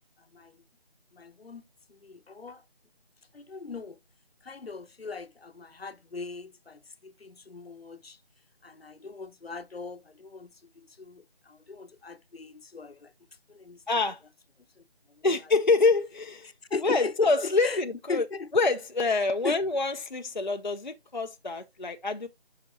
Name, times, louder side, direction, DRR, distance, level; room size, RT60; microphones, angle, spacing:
voice 1, 1.1-1.6 1.9-2.6 3.3-4.0 4.4-8.2 8.6-13.1 13.5-13.8 14.8-14.9 15.1-15.4 16.7-17.8 18.1-18.5 19.1-19.6, left 4 dB, 75° left, 0.8 m, -39 dB
voice 2, 13.9-14.2 15.2-16.5 16.8-18.3 18.5-22.3, left 3 dB, 50° left, 0.5 m, -26 dB
8.9 x 5.7 x 2.6 m
figure-of-eight pair, 170°, 31 cm